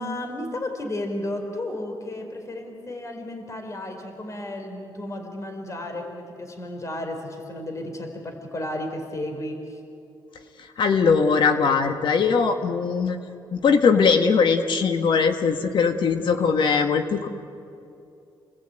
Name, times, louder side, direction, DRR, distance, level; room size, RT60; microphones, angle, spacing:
voice 1, 0.0-9.8, left 1 dB, 35° left, 4 dB, 4.5 m, -33 dB
voice 2, 10.6-13.2 13.5-17.3, left 5 dB, 65° left, 6 dB, 1.6 m, -20 dB
29.0 x 20.0 x 9.1 m, 2.6 s
cardioid pair, 85°, 9 cm